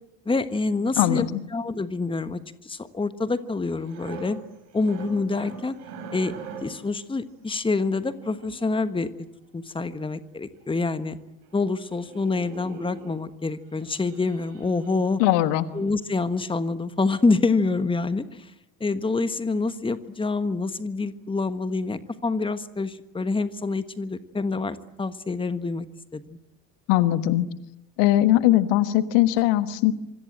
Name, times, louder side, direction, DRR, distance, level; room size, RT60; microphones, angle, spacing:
voice 1, 0.2-1.3 1.5-4.4 4.7-5.8 6.1-9.1 9.5-11.2 11.5-15.2 15.7-18.5 18.8-25.9 26.1-26.4, left 3 dB, 10° left, 13 dB, 1.4 m, -26 dB
voice 2, 1.0-1.4 15.2-15.7 26.9-27.5 28.0-29.9, left 14 dB, 55° left, 13 dB, 1.4 m, -20 dB
sound 1, 3.7-6.9 7.9-9.1 10.2-10.3 10.6-10.7 11.0-11.2 11.5-11.7 11.9-13.2 13.7-15.3 15.7-15.9, right 3 dB, 65° right, 6.7 m, -42 dB
26.5 x 25.5 x 7.8 m, 0.90 s
figure-of-eight pair, 55°, 49 cm